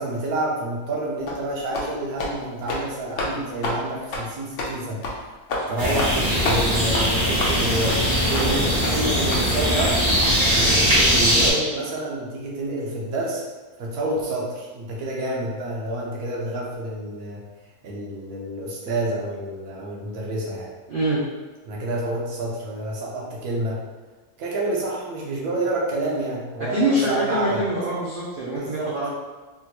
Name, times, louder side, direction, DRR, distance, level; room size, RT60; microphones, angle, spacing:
voice 1, 0.0-5.3 5.7-10.0 10.4-13.4 13.8-17.4 17.8-20.7 21.7-23.8 24.4-27.6 28.4-29.0, right 1 dB, 80° right, -4 dB, 1.3 m, -28 dB
sound 1, 1.3-1.4 1.7-1.9 2.2-2.3 2.6-2.8 3.2-3.3 3.6-3.8 4.1-4.2 4.6-4.7 5.0-5.2 5.5-5.6 6.0-6.2 6.4-6.6 6.9-7.1 7.4-7.6 7.9-8.0 8.3-8.5 8.8-8.9 9.3-9.5 9.8-9.9 10.2-10.3, left 2 dB, 65° left, 0.9 m, -28 dB
voice 2, 5.6-5.9 8.4-8.7 20.9-21.2 26.7-29.1, right 1 dB, 60° right, -6 dB, 0.5 m, -25 dB
sound 2, 5.8-11.5, equal, 45° right, 1.1 m, -20 dB
3.5 x 2.2 x 2.9 m, 1.2 s
omnidirectional pair, 1.5 m